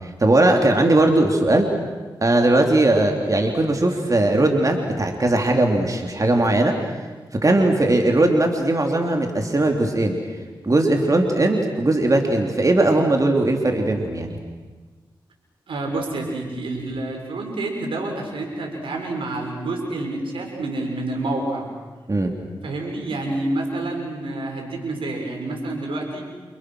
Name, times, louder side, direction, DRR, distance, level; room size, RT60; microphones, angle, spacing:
voice 1, 0.0-1.7 2.2-6.7 7.4-10.2 10.6-14.4 22.1-22.3, right 2 dB, 40° right, 3 dB, 3.3 m, -19 dB
voice 2, 15.7-21.7 22.6-26.3, right 2 dB, 85° right, 2 dB, 6.1 m, -28 dB
29.0 x 28.5 x 6.4 m, 1.3 s
cardioid pair, 55°, 9 cm